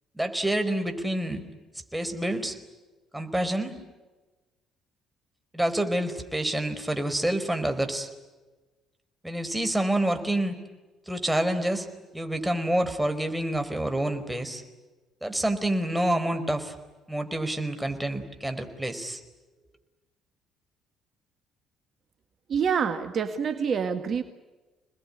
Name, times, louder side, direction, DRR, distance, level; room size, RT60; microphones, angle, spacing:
voice 1, 0.2-1.4 1.9-2.6 3.1-3.7 5.5-8.1 9.2-10.5 11.1-11.9 12.1-14.6 15.2-16.7 17.1-19.2, right 1 dB, 5° right, 6 dB, 4.8 m, -27 dB
voice 2, 22.5-24.2, right 6 dB, 50° right, 8 dB, 2.0 m, -26 dB
28.0 x 20.5 x 9.9 m, 1.2 s
hypercardioid pair, 60°, 0 cm